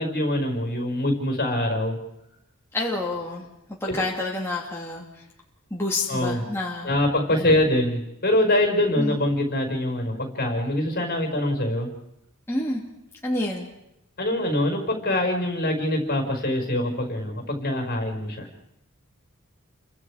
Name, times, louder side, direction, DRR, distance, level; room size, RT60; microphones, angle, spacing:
voice 1, 0.0-2.0 3.9-4.0 6.1-6.4 6.8-11.9 14.2-18.5, left 1 dB, 45° left, 3 dB, 5.1 m, -24 dB
voice 2, 2.7-3.4 3.8-5.0 5.7-6.9 7.3-7.6 9.0-9.2 12.5-12.8 13.2-13.6, left 2 dB, 10° left, -4 dB, 2.6 m, -28 dB
30.0 x 24.0 x 5.0 m, 0.86 s
head